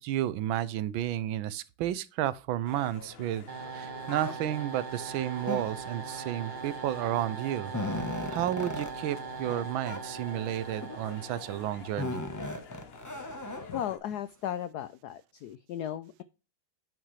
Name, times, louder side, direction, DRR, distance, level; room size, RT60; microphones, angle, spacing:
voice 1, 0.0-3.5 3.7-8.0 8.3-12.2, right 12 dB, 80° right, 1.4 m, -32 dB
sound 1, 2.6-14.0, left 6 dB, 55° left, 0.6 m, -50 dB
sound 2, 3.5-12.4, right 5 dB, 50° right, 0.6 m, -41 dB
sound 3, 4.1-4.3 5.4-6.0 6.9-7.0 7.4-8.9 9.4-9.6 9.9-10.0 10.7-11.1 12.0-13.8, left 1 dB, 20° left, 0.5 m, -36 dB
voice 2, 13.6-16.2, left 11 dB, 85° left, 0.8 m, -36 dB
8.8 x 6.1 x 3.2 m
omnidirectional pair, 2.3 m